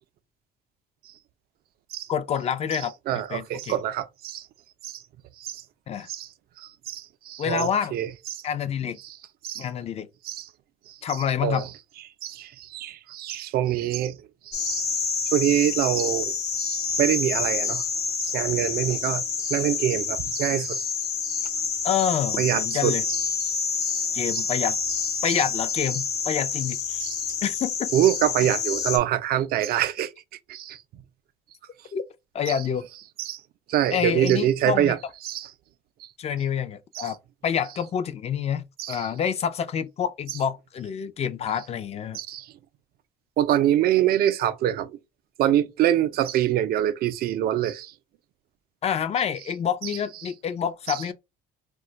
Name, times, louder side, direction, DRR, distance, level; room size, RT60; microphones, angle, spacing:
voice 1, 2.1-3.8 5.9-6.1 7.4-7.9 8.4-9.0 9.6-10.1 11.0-11.7 21.8-23.0 24.1-24.8 25.2-27.1 27.4-27.9 31.9-32.0 32.3-32.8 33.9-35.0 36.2-37.2 37.4-42.2 48.8-51.1, left 8 dB, 40° left, 0.4 m, -27 dB
voice 2, 3.1-4.4 4.8-5.0 5.4-5.6 6.1-6.3 6.6-8.4 9.4-9.7 10.2-10.5 10.9-11.0 11.4-11.7 12.2-14.2 14.5-14.9 15.3-16.3 16.6-17.8 18.2-20.9 21.2-21.5 22.4-23.2 23.8-24.0 24.3-24.4 25.3-25.4 27.0-27.2 27.9-30.1 30.5-30.8 32.5-32.6 33.2-33.4 33.7-35.0 35.2-35.5 36.9-37.1 38.8-39.1 42.1-42.5 43.4-44.9 45.4-47.9 49.8-49.9 50.9-51.1, right 11 dB, 65° right, 0.4 m, -25 dB
sound 1, 14.5-29.0, left 5 dB, 75° left, 0.8 m, -28 dB
2.4 x 2.2 x 3.9 m
cardioid pair, 110°, 17 cm